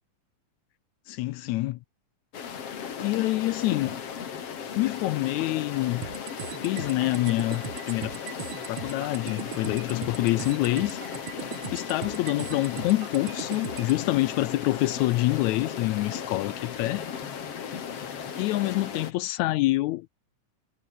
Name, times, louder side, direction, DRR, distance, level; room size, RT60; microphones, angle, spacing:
voice 1, 1.1-1.8 3.0-3.9 4.8-6.0 6.6-8.2 8.7-11.0 11.7-17.1 18.4-20.1, left 18 dB, 80° left, 1.7 m, -26 dB
sound 1, 2.3-19.1, left 7 dB, 50° left, 3.0 m, -36 dB
sound 2, 6.0-14.0, right 12 dB, 90° right, 1.1 m, -39 dB
omnidirectional pair, 3.8 m